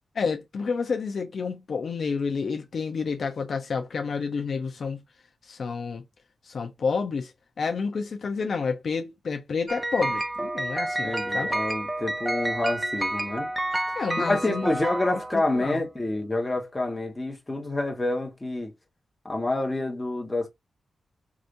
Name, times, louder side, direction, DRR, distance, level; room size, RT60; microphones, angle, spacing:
voice 1, 0.2-5.0 5.4-6.0 6.4-11.5 13.9-14.7 15.5-15.8, left 5 dB, 60° left, 0.7 m, -29 dB
sound 1, 9.7-15.7, right 1 dB, 10° right, 0.4 m, -30 dB
voice 2, 11.0-13.5 14.2-18.7 19.2-20.5, left 2 dB, 15° left, 1.3 m, -28 dB
4.9 x 2.7 x 2.5 m
wide cardioid pair, 115°, 0 cm